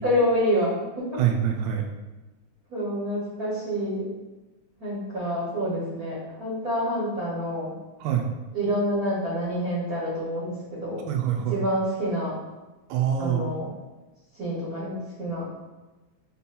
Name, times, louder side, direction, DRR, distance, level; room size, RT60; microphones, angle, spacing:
voice 1, 0.0-1.2 2.7-4.1 4.8-7.7 8.5-11.0 11.5-12.4 13.2-13.7 14.4-15.5, equal, 60° right, -8 dB, 0.9 m, -27 dB
voice 2, 1.2-1.8 8.0-8.3 11.1-11.6 12.9-13.4, right 9 dB, 80° right, 3 dB, 1.7 m, -25 dB
5.4 x 2.2 x 4.1 m, 1.1 s
omnidirectional pair, 3.4 m